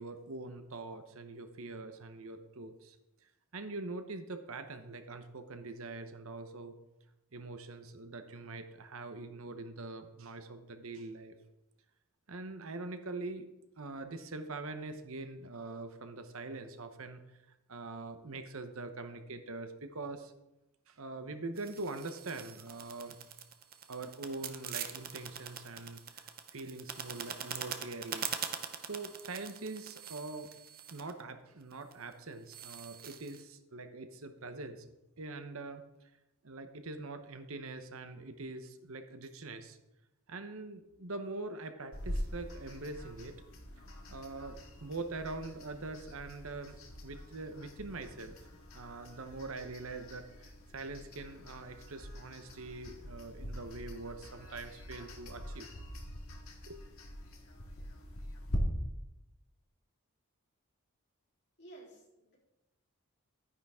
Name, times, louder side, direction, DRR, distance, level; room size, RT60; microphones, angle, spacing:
voice 1, 0.0-3.0 3.5-6.8 7.3-11.4 12.3-13.5 13.8-17.4 17.7-20.3 20.9-23.2 23.9-28.3 28.8-30.5 30.9-34.9 35.2-36.1 36.4-39.8 40.3-43.3 44.1-46.8 47.0-48.4 48.7-55.7 56.6-56.8, right 3 dB, 65° right, 8 dB, 1.0 m, -43 dB
sound 1, 21.6-31.2 31.7-32.1 32.5-33.4, right 8 dB, 40° right, 0.8 m, -43 dB
sound 2, 41.9-58.6, equal, 70° left, 1.8 m, -45 dB
voice 2, 61.6-62.4, right 2 dB, 50° left, -4 dB, 3.7 m, -53 dB
11.5 x 9.9 x 3.6 m, 0.94 s
head